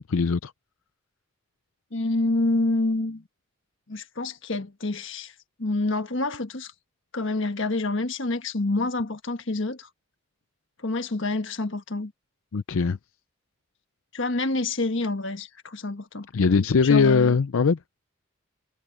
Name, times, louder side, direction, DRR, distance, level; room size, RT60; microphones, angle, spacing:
voice 1, 0.1-0.5 12.5-13.0 16.3-17.8, left 5 dB, 85° left, 0.5 m, -20 dB
voice 2, 1.9-3.2 3.9-5.3 5.6-6.7 7.1-9.9 10.8-12.1 14.1-16.3 16.9-17.4, left 2 dB, 65° left, 1.4 m, -27 dB
head